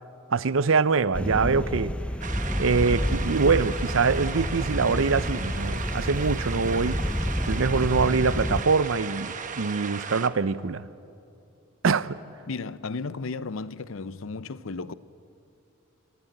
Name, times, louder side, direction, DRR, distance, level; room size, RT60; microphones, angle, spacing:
voice 1, 0.3-2.0 2.6-7.0 7.5-10.8 11.8-12.2, right 4 dB, 70° right, 0.6 m, -24 dB
sound 1, 1.1-8.6, equal, 5° left, 0.6 m, -29 dB
sound 2, 2.2-10.3, right 6 dB, 40° right, 1.0 m, -36 dB
voice 2, 12.5-14.9, left 4 dB, 70° left, 0.6 m, -34 dB
27.0 x 15.0 x 9.1 m
head